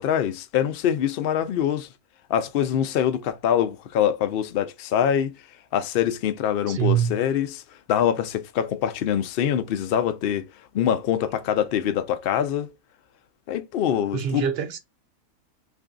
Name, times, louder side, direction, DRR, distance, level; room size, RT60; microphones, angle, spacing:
voice 1, 0.0-1.9 2.3-5.4 5.7-7.6 7.9-10.5 10.7-12.7 13.5-14.5, left 9 dB, 85° left, 0.5 m, -24 dB
voice 2, 6.7-7.2 14.1-14.8, right 9 dB, 60° right, 0.7 m, -24 dB
3.4 x 2.6 x 3.7 m
omnidirectional pair, 1.5 m